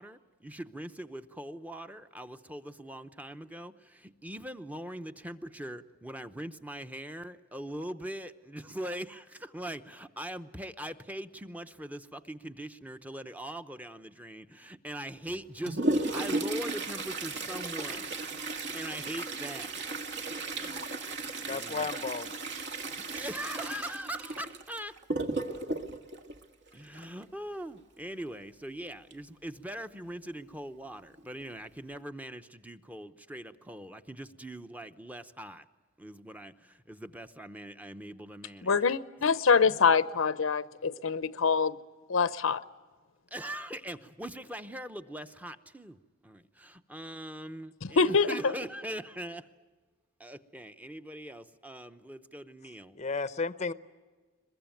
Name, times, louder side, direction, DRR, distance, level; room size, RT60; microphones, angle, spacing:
voice 1, 0.0-19.8 20.5-20.9 21.4-21.9 22.8-25.0 26.7-35.7 36.0-38.7 43.3-49.5 50.2-53.0, right 1 dB, 10° right, 9 dB, 0.8 m, -41 dB
Toilet flush, 15.3-27.2 29.1-29.2 29.5-29.6 30.4-30.5 31.2-31.4 31.9-32.0, right 2 dB, 55° right, 1.6 m, -35 dB
voice 2, 21.5-22.3 52.9-53.7, left 4 dB, 35° left, 13 dB, 0.7 m, -33 dB
voice 3, 38.6-41.8 42.1-42.6 47.8-48.4, left 5 dB, 75° left, 15 dB, 0.7 m, -25 dB
22.5 x 22.0 x 9.1 m, 1.4 s
head